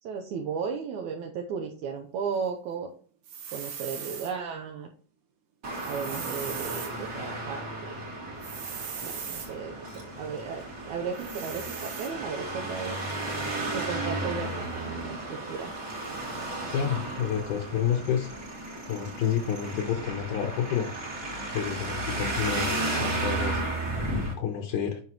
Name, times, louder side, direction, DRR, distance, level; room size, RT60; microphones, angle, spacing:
voice 1, 0.0-2.9 3.5-4.9 5.9-8.0 9.0-13.0 13.7-15.7, right 6 dB, 75° right, 2 dB, 2.0 m, -35 dB
sound 1, 3.2-4.3 5.7-6.9 8.4-9.5 11.1-12.1, right 7 dB, 90° right, 3.2 m, -39 dB
Traffic noise roadway noise, 5.6-24.3, right 2 dB, 35° right, 1.1 m, -34 dB
voice 2, 16.7-18.3 18.9-20.9 21.5-23.6 24.2-25.0, left 8 dB, 75° left, 2 dB, 2.3 m, -29 dB
9.4 x 5.2 x 3.0 m, 0.43 s
omnidirectional pair, 3.8 m